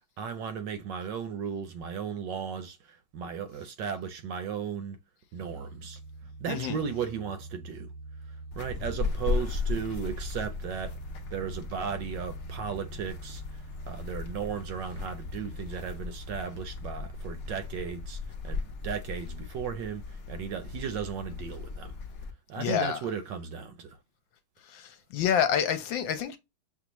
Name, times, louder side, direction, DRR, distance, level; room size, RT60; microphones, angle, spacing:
voice 1, 0.2-5.0 5.3-6.0 6.4-7.9 8.3-11.0 11.3-22.0 22.5-24.0, right 7 dB, 70° right, 1.1 m, -36 dB
sound 1, 5.4-17.9, right 3 dB, 90° right, 1.5 m, -45 dB
voice 2, 6.5-6.8 22.6-23.0 24.7-26.4, left 8 dB, 75° left, 1.3 m, -28 dB
sound 2, 8.5-22.3, left 4 dB, 90° left, 0.6 m, -37 dB
6.8 x 2.4 x 3.0 m
omnidirectional pair, 2.3 m